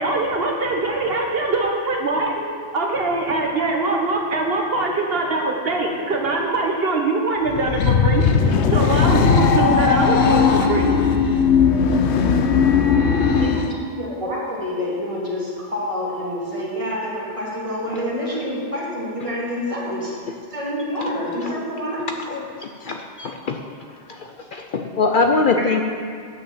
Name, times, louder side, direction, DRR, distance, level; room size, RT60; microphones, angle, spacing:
voice 1, 0.0-2.4 2.7-8.2 8.7-10.9, right 2 dB, 65° right, 1 dB, 1.1 m, -22 dB
sound 1, 7.5-13.7, left 6 dB, 85° left, 1.0 m, -17 dB
voice 2, 13.4-20.2 20.5-22.0 25.6-25.7, left 1 dB, 30° right, -5 dB, 2.2 m, -27 dB
voice 3, 22.3-23.6 24.1-25.8, left 4 dB, 60° left, 4 dB, 0.7 m, -23 dB
8.7 x 6.6 x 7.3 m, 2.2 s
omnidirectional pair, 1.1 m